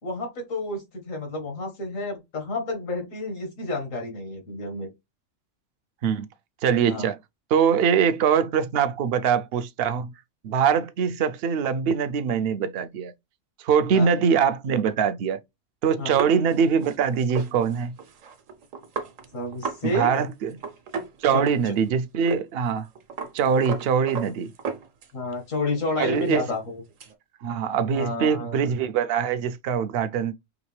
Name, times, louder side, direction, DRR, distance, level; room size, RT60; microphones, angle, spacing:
voice 1, 0.0-4.9 6.9-7.1 13.9-14.1 16.0-16.2 19.3-20.1 21.3-21.4 25.1-26.8 27.9-28.6, left 2 dB, 85° left, 2.0 m, -30 dB
voice 2, 6.6-7.2 7.5-10.1 10.4-13.1 13.6-15.4 15.8-17.9 19.8-20.6 21.2-22.9 23.3-24.5 26.0-26.4 27.4-30.3, right 7 dB, 60° right, 0.7 m, -23 dB
sound 1, 16.1-19.8 20.1-20.2 20.5-21.9 22.3-22.4 22.7-25.3 25.7-27.1, right 5 dB, 80° right, 1.3 m, -35 dB
4.9 x 3.0 x 3.2 m
omnidirectional pair, 1.3 m